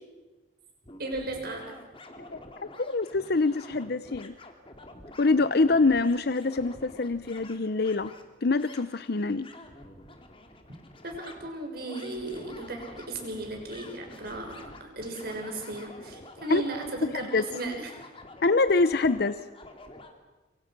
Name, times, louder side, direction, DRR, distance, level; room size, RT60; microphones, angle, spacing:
sound 1, 0.8-20.1, left 2 dB, 30° left, 2.7 m, -48 dB
voice 1, 1.0-1.6 11.0-17.9, right 2 dB, 55° right, 2 dB, 6.2 m, -36 dB
voice 2, 2.8-4.3 5.2-8.1 8.4-9.5 16.5-16.6 17.0-17.5 18.4-19.4, left 3 dB, 55° left, 12 dB, 0.7 m, -25 dB
27.0 x 25.5 x 6.1 m, 1.1 s
head